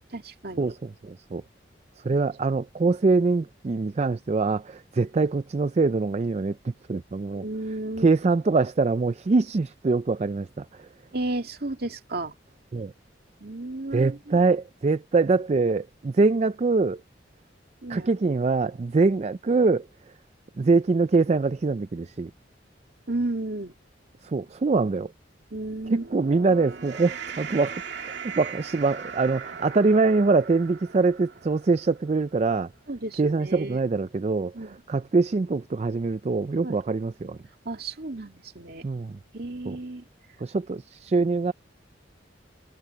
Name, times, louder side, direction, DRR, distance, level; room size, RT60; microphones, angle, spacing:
voice 1, 0.0-0.7 7.3-8.1 11.1-12.3 13.4-14.4 17.8-18.1 23.1-23.7 25.5-26.1 32.9-33.8 34.5-34.8 36.6-36.8 37.6-38.8 39.3-40.1, right 2 dB, 55° right, 2.5 m, -33 dB
voice 2, 0.6-1.4 2.0-7.4 8.0-10.9 12.7-12.9 13.9-17.0 17.9-19.9 20.6-22.3 24.2-25.1 25.9-27.8 28.4-32.7 33.2-37.4 38.8-39.2 39.7-39.8 40.4-41.5, right 3 dB, 35° right, 0.4 m, -24 dB
sound 1, 25.6-32.2, right 6 dB, 70° right, 2.2 m, -39 dB
head